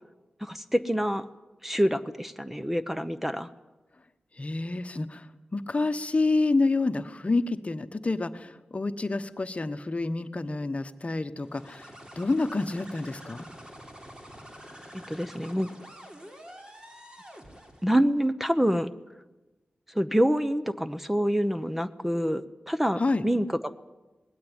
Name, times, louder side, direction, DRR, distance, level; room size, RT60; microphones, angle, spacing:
voice 1, 0.4-1.3 1.6-3.5 15.1-15.7 17.8-18.9 19.9-23.7, equal, 5° right, 11 dB, 0.8 m, -26 dB
voice 2, 4.4-5.3 5.5-11.9 12.2-13.5 23.0-23.2, left 3 dB, 40° left, 10 dB, 1.1 m, -28 dB
sound 1, 11.4-18.0, equal, 25° right, 3.3 m, -47 dB
19.5 x 16.5 x 9.7 m, 1.1 s
cardioid pair, 60°, 3 cm